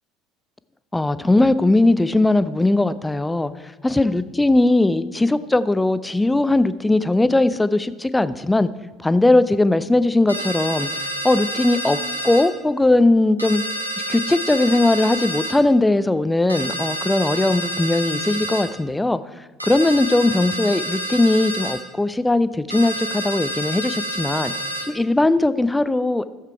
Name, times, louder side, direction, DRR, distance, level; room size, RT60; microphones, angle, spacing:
voice 1, 0.9-3.5 3.8-8.7 9.0-10.9 11.2-12.0 12.2-13.6 14.1-19.2 19.6-24.5 24.9-26.3, left 2 dB, 10° left, 14 dB, 0.5 m, -19 dB
sound 1, 10.3-12.5 13.4-15.6 16.5-18.7 19.6-21.8 22.7-24.9, right 1 dB, 90° right, 0.9 m, -28 dB
14.0 x 7.5 x 4.6 m, 1.3 s
figure-of-eight pair, 65°, 0 cm